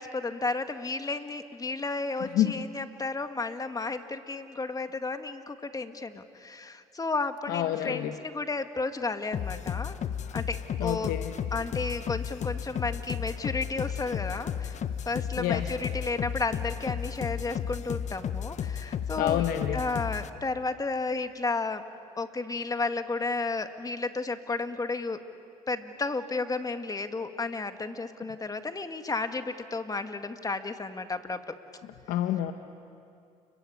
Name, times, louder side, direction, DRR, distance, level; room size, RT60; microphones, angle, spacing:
voice 1, 0.0-10.0 10.3-11.1 11.5-14.8 15.1-19.5 19.7-21.8 22.2-25.2 25.7-31.5, left 3 dB, 25° left, 8 dB, 2.0 m, -33 dB
voice 2, 7.5-8.1 10.8-11.3 15.4-15.7 19.2-19.8 32.1-32.5, left 12 dB, 75° left, 8 dB, 1.1 m, -27 dB
sound 1, 9.3-20.3, left 8 dB, 50° left, 1.2 m, -33 dB
30.0 x 22.5 x 8.7 m, 2.5 s
supercardioid pair, 75°, 15 cm